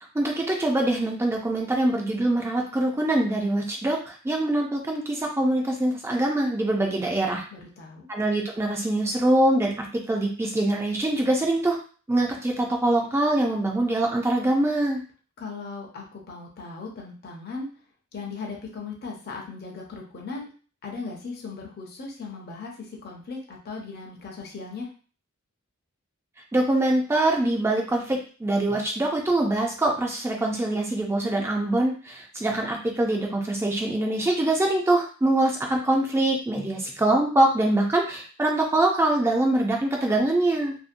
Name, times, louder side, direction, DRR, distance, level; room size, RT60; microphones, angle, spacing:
voice 1, 0.1-7.4 8.1-11.8 12.1-15.0 26.5-40.8, right 1 dB, 10° right, 0 dB, 0.3 m, -24 dB
voice 2, 7.5-8.1 15.4-17.7 18.1-20.5 20.8-24.9, left 4 dB, 50° left, -1 dB, 0.6 m, -37 dB
2.6 x 2.1 x 2.5 m, 0.39 s
head